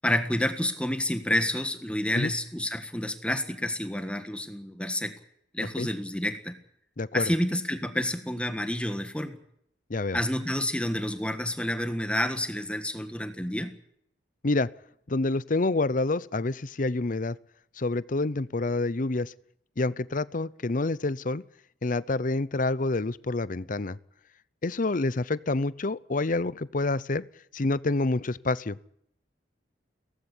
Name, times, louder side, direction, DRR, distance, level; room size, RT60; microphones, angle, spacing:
voice 1, 0.0-5.1 5.5-6.6 7.1-9.4 10.1-13.7, left 1 dB, 5° left, 8 dB, 1.5 m, -29 dB
voice 2, 7.0-7.3 9.9-10.2 14.4-14.7 15.1-17.4 17.8-19.3 19.8-21.4 21.8-24.0 24.6-27.2 27.5-28.8, left 2 dB, 45° left, 19 dB, 0.7 m, -27 dB
17.5 x 15.0 x 9.9 m, 0.71 s
head